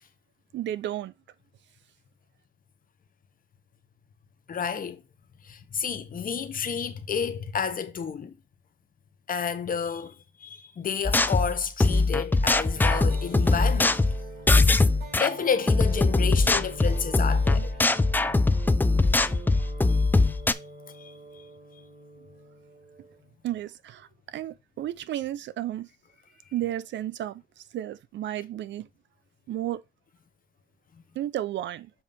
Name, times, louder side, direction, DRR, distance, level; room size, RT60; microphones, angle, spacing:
voice 1, 0.5-1.1 23.4-25.9 26.5-28.9 29.5-29.8 31.1-31.9, right 12 dB, 65° right, 0.5 m, -33 dB
voice 2, 4.5-5.0 5.4-8.3 9.3-14.1 15.1-17.8 19.1-19.3 19.9-20.4 20.9-21.5 21.7-21.8, left 6 dB, 45° left, 0.9 m, -31 dB
sound 1, 11.0-15.3 15.7-20.5, left 3 dB, 10° left, 0.4 m, -22 dB
sound 2, 12.7-23.3, right 2 dB, 50° right, 3.9 m, -45 dB
7.1 x 2.7 x 5.2 m
cardioid pair, 90°, 20 cm